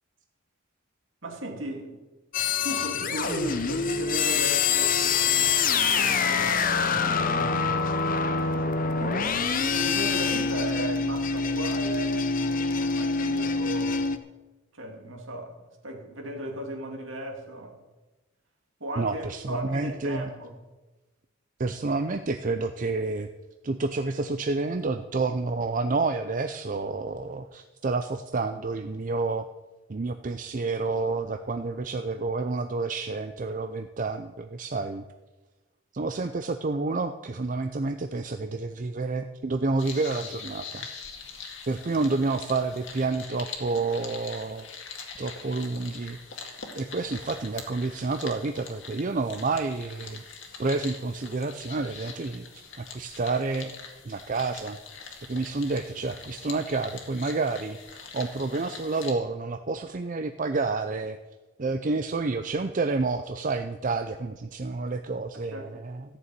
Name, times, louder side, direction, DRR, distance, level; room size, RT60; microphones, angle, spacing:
voice 1, 1.2-2.0 2.6-8.1 8.7-14.2 14.7-15.6 15.8-17.8 18.8-20.6 65.3-65.8, right 1 dB, 65° right, 2.5 m, -37 dB
sound 1, 2.3-14.2, left 5 dB, 40° left, 0.8 m, -25 dB
voice 2, 19.0-20.2 21.6-23.3 23.6-29.5 29.9-35.0 35.9-40.9 41.7-44.7 45.2-46.2 46.8-50.2 50.6-53.7 54.0-54.8 55.3-61.2 61.6-66.0, right 3 dB, 40° right, 0.5 m, -29 dB
sound 2, 39.8-59.1, left 5 dB, 60° left, 2.1 m, -43 dB
14.0 x 6.9 x 9.1 m
head